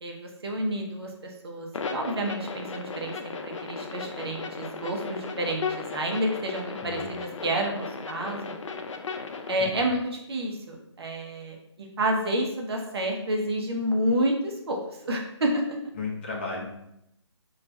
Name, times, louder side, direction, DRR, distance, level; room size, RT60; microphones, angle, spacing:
voice 1, 0.0-5.7 5.9-8.5 9.5-15.8, right 1 dB, 55° right, 1 dB, 0.7 m, -29 dB
sound 1, 1.7-9.5, left 5 dB, 90° left, 0.4 m, -36 dB
voice 2, 15.9-16.7, left 3 dB, 25° left, -3 dB, 0.5 m, -34 dB
2.4 x 2.3 x 4.0 m, 0.80 s
hypercardioid pair, 160°, 16 cm